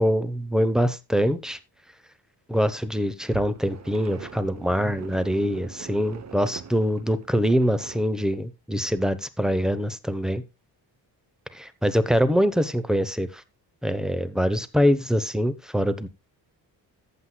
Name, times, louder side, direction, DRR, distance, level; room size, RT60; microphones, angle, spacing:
voice 1, 0.0-1.6 2.5-10.4 11.5-13.4 13.8-16.1, equal, ahead, 0.9 m, -24 dB
sound 1, 3.3-8.0, right 7 dB, 40° right, 1.0 m, -42 dB
14.5 x 8.1 x 2.3 m
cardioid pair, 125°, 41 cm